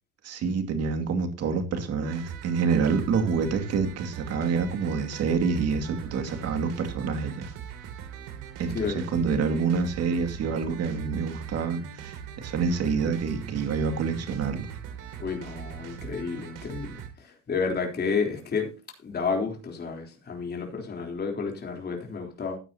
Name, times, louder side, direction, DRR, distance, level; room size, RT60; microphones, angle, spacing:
voice 1, 0.2-7.5 8.6-14.7, right 5 dB, 50° right, 2.4 m, -27 dB
sound 1, 2.1-17.1, right 8 dB, 75° right, 2.8 m, -41 dB
voice 2, 15.2-17.0 17.5-18.7 19.0-22.6, left 5 dB, 30° left, 3.6 m, -30 dB
14.5 x 9.3 x 2.9 m
cardioid pair, 115°, 31 cm